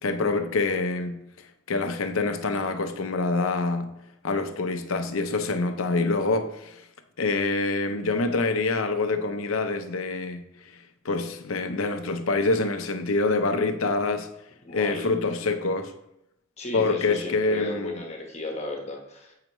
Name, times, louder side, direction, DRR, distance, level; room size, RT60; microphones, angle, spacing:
voice 1, 0.0-3.9 4.2-6.9 7.2-14.3 14.7-15.9 16.7-17.9, left 3 dB, 85° left, 0.7 m, -26 dB
voice 2, 14.6-15.1 16.6-19.3, left 2 dB, 35° left, 1.1 m, -34 dB
7.8 x 5.7 x 3.0 m
head